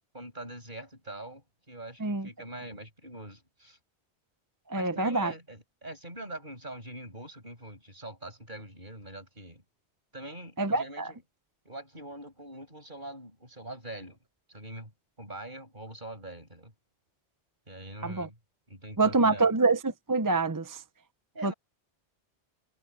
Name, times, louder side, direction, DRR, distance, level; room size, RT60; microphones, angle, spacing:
voice 1, 0.1-3.8 4.7-9.6 10.1-11.2 11.6-14.2 14.5-14.9 15.2-16.7 17.7-18.4 18.7-19.5 21.3-21.5, right 1 dB, 45° right, 7.8 m, -43 dB
voice 2, 4.7-5.3 10.6-11.1 18.0-18.3 19.0-20.8 21.4-21.5, right 3 dB, 20° right, 0.6 m, -26 dB
omnidirectional pair, 1.2 m